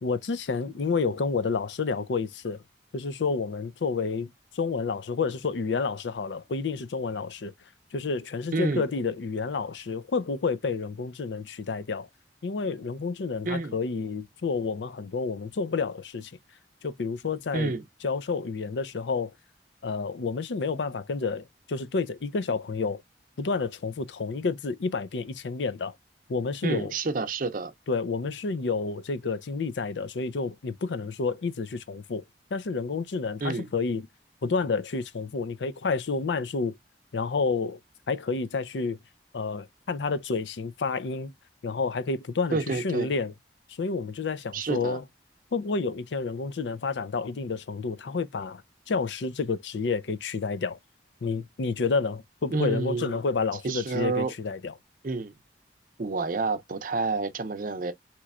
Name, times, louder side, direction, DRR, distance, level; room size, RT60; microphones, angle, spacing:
voice 1, 0.0-2.6 2.9-7.5 7.9-12.1 12.4-16.3 16.8-17.7 18.0-19.3 19.8-23.0 23.4-25.9 26.3-26.9 27.9-32.2 32.5-34.1 34.4-36.7 37.1-37.8 38.1-39.0 39.3-41.3 41.6-43.3 43.7-45.0 45.5-50.8 51.2-54.7, left 4 dB, 85° left, 0.5 m, -30 dB
voice 2, 8.5-8.9 13.4-13.8 17.5-17.8 26.6-27.7 33.4-33.7 42.5-43.1 44.5-45.0 52.5-53.2 53.6-54.3 55.0-55.3 56.0-57.9, right 3 dB, 50° right, 0.6 m, -29 dB
4.2 x 3.0 x 2.3 m
head